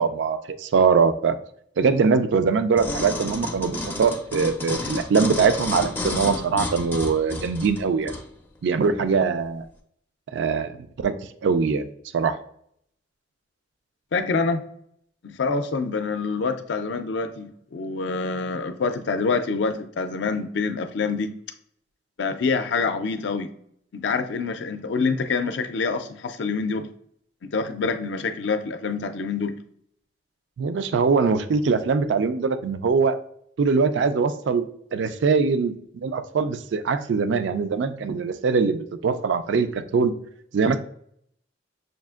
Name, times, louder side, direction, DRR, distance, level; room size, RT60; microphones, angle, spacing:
voice 1, 0.0-1.4 1.8-8.1 8.6-9.7 10.3-11.1 11.4-11.9 12.1-12.4 30.6-33.2 33.6-34.6 34.9-40.1 40.5-40.8, right 5 dB, 75° right, 11 dB, 0.4 m, -22 dB
sound 1, 2.8-8.3 8.8-8.9, left 2 dB, 10° left, 0.4 m, -31 dB
voice 2, 14.1-14.6 15.2-21.3 22.2-23.5 23.9-26.9 27.4-29.6, left 4 dB, 70° left, 9 dB, 0.4 m, -26 dB
6.3 x 2.4 x 2.3 m, 0.68 s
head